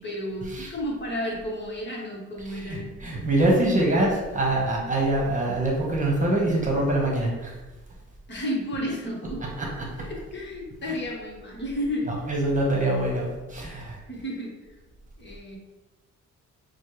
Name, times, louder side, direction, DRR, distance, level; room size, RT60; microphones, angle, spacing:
voice 1, 0.0-3.1 8.3-9.4 10.0-12.1 14.1-14.6 15.2-15.6, equal, 35° left, -2 dB, 1.2 m, -32 dB
voice 2, 2.5-7.5 9.6-9.7 10.8-10.9 12.3-14.0, right 1 dB, 25° right, -2 dB, 1.1 m, -24 dB
6.3 x 2.2 x 3.2 m, 1.1 s
cardioid pair, 90°, 30 cm